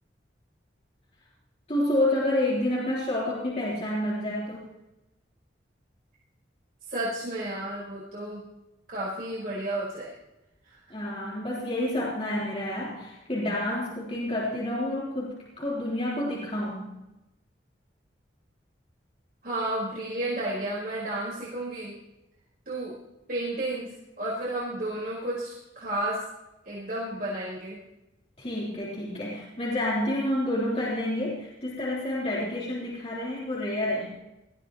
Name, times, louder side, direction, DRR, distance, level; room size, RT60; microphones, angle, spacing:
voice 1, 1.7-4.6 10.9-16.9 28.4-34.1, left 1 dB, 35° left, -7 dB, 3.7 m, -29 dB
voice 2, 6.9-8.4 8.9-10.1 10.6-10.8 19.4-21.9 22.7-22.9 23.3-23.9 24.2-26.2 26.6-27.8, right 1 dB, 50° right, -7 dB, 4.7 m, -32 dB
20.0 x 14.5 x 3.1 m, 0.95 s
head